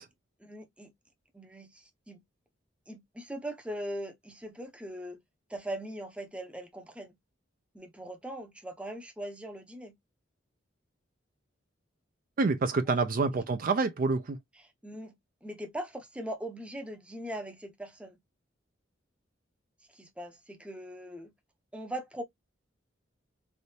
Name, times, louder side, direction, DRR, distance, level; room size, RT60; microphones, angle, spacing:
voice 1, 0.4-0.9 1.3-2.2 2.9-5.2 5.5-7.2 7.7-9.9 12.9-13.0 14.8-15.1 15.4-18.2 19.9-21.3 21.7-22.2, right 1 dB, 5° right, 0.7 m, -40 dB
voice 2, 12.4-14.4, right 4 dB, 45° right, 0.5 m, -27 dB
3.4 x 2.6 x 2.7 m
head